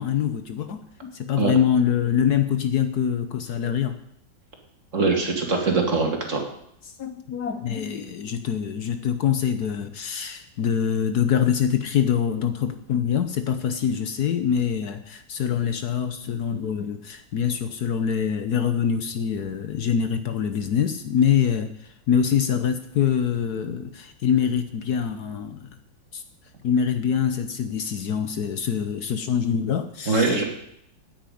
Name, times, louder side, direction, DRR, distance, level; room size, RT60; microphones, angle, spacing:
voice 1, 0.0-4.0 7.0-21.7 22.1-25.7 26.1-26.2 26.6-30.4, left 8 dB, 60° left, 9 dB, 1.3 m, -24 dB
voice 2, 4.9-6.4 30.1-30.4, right 3 dB, 40° right, 2 dB, 2.5 m, -22 dB
9.4 x 9.2 x 9.2 m, 0.73 s
omnidirectional pair, 2.0 m